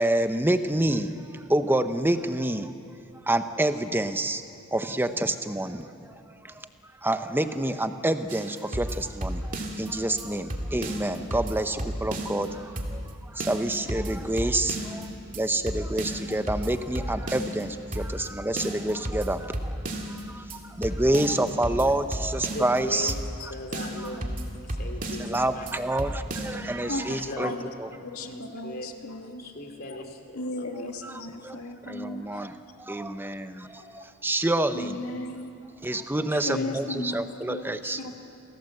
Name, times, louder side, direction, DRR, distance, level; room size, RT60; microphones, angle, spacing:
voice 1, 0.0-2.7 3.2-4.4 4.7-6.7 6.9-23.1 24.0-24.2 25.2-27.5 27.8-27.9 31.0-31.6 31.8-35.0 35.8-38.0, right 1 dB, 10° right, 9 dB, 0.8 m, -28 dB
sound 1, 8.3-9.9 10.2-10.3 10.5-12.5 12.8-13.1 13.4-15.0 15.3-15.4 15.7-17.6 17.9-18.3 18.6-20.2 20.5-20.6 20.8-22.8 23.1-23.4 23.7-25.4 25.7-25.8 26.0-26.6, right 1 dB, 40° right, 2.4 m, -33 dB
voice 2, 22.5-23.2 23.5-24.4 24.7-25.7 27.3-27.6 28.2-28.9 29.4-30.7 35.0-35.3 36.3-36.8 38.0-38.1, left 1 dB, 45° left, 4 dB, 2.8 m, -39 dB
voice 3, 26.8-27.6 28.0-29.5 29.9-30.0 30.3-32.5 33.8-34.1 34.7-35.5 36.5-38.2, left 2 dB, 70° left, 4 dB, 2.1 m, -36 dB
28.0 x 17.5 x 7.9 m, 2.7 s
head